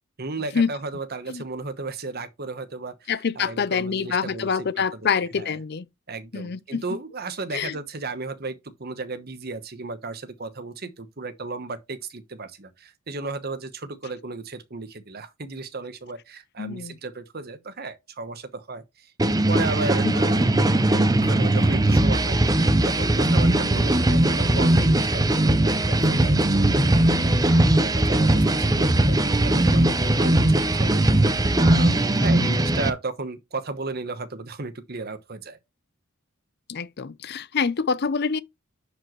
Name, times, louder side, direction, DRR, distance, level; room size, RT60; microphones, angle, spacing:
voice 1, 0.2-4.7 4.9-5.6 6.1-20.5 21.2-22.4 22.8-27.1 27.5-31.0 31.6-35.6, right 3 dB, 50° right, 1.1 m, -34 dB
voice 2, 3.1-5.9 6.3-6.8 7.5-7.8 16.6-17.0 20.0-20.2 23.6-23.7 32.4-32.6 36.7-38.4, left 6 dB, 50° left, 0.6 m, -26 dB
sound 1, 19.2-32.9, right 1 dB, 20° right, 0.6 m, -20 dB
10.0 x 5.0 x 3.1 m
head